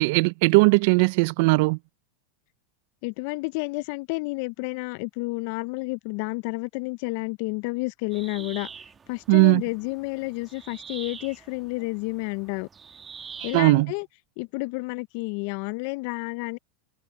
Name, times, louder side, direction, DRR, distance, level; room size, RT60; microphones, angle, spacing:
voice 1, 0.0-1.8 9.3-9.6 13.4-13.9, right 28 dB, 60° right, 0.6 m, -19 dB
voice 2, 3.0-8.7 9.1-12.7 13.4-14.1 14.4-16.6, left 27 dB, 60° left, 0.7 m, -30 dB
sound 1, 8.1-13.6, right 6 dB, 25° right, 1.5 m, -45 dB
hypercardioid pair, 95°, 0 cm